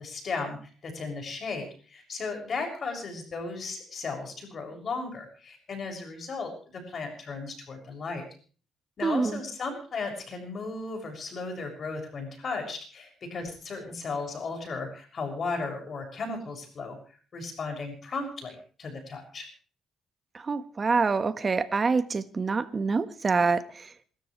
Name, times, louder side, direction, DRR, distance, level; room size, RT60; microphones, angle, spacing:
voice 1, 0.0-8.3 9.0-17.0 17.3-19.5, left 4 dB, 50° left, 3 dB, 7.0 m, -35 dB
voice 2, 9.0-9.4 20.3-23.9, right 4 dB, 35° right, 12 dB, 1.5 m, -26 dB
28.0 x 13.5 x 3.3 m, 0.40 s
cardioid pair, 90°, 0 cm